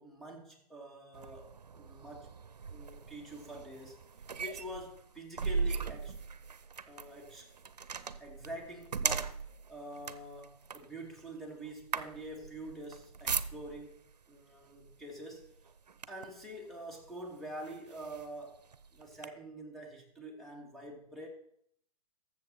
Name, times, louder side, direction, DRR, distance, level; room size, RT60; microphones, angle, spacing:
voice 1, 0.0-2.4 2.7-4.0 4.4-6.1 6.9-7.5 8.2-9.4 9.7-15.4 16.1-18.6 18.9-21.3, right 1 dB, ahead, 2.5 m, -46 dB
sound 1, 1.1-14.0 14.8-15.0 15.4-16.4 17.1-17.2 17.6-19.3, right 5 dB, 90° right, 0.7 m, -39 dB
13.5 x 7.2 x 4.4 m
hypercardioid pair, 120°, 20 cm